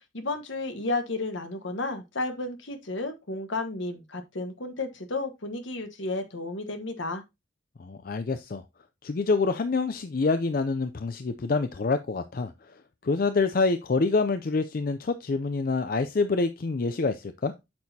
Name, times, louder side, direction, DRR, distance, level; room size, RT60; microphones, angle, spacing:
voice 1, 0.0-7.2, left 2 dB, 70° left, 1.3 m, -32 dB
voice 2, 7.8-8.6 9.0-12.7 13.0-17.5, left 3 dB, 45° left, 0.4 m, -26 dB
8.5 x 6.2 x 2.7 m
head